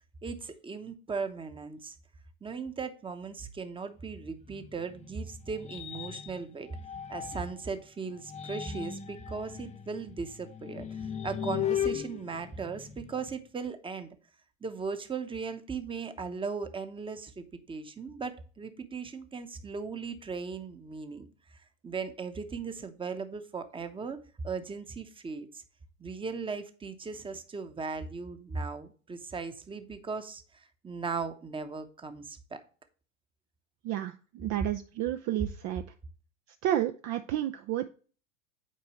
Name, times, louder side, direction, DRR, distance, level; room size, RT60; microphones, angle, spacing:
voice 1, 0.2-2.0 2.4-6.7 7.1-14.2 14.6-24.2 24.4-25.6 26.0-32.6, right 5 dB, 15° right, 9 dB, 0.9 m, -38 dB
Squealing swells, 4.5-7.6 8.1-13.3, left 9 dB, 20° left, 0.4 m, -37 dB
voice 2, 33.8-35.8 36.6-37.9, right 12 dB, 40° right, 8 dB, 0.5 m, -31 dB
8.4 x 4.5 x 3.0 m, 0.38 s
hypercardioid pair, 95°, 39 cm